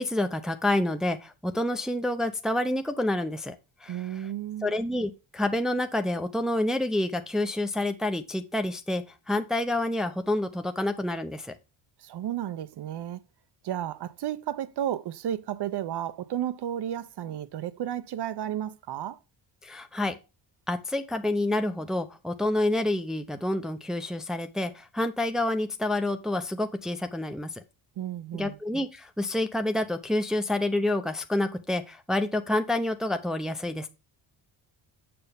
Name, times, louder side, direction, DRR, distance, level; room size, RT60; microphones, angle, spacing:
voice 1, 0.0-3.5 3.8-4.0 4.6-11.5 19.6-20.1 20.7-27.5 28.3-33.9, left 1 dB, ahead, 0.7 m, -28 dB
voice 2, 3.9-4.7 12.0-13.2 13.6-19.2 28.0-28.6, right 11 dB, 60° right, 0.8 m, -33 dB
6.9 x 6.6 x 3.5 m
cardioid pair, 105°, 45 cm